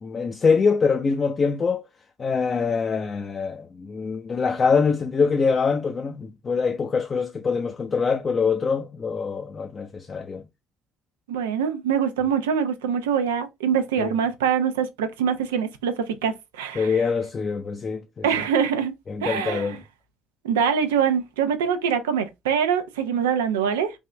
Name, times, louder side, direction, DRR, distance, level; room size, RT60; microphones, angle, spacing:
voice 1, 0.0-1.8 2.2-10.4 14.0-14.1 16.8-18.3 19.1-19.8, left 5 dB, 40° left, 0.6 m, -24 dB
voice 2, 11.3-17.0 18.2-18.9 19.2-19.8 20.4-23.9, right 7 dB, 90° right, 0.6 m, -24 dB
3.5 x 2.5 x 3.3 m
hypercardioid pair, 55°, 0 cm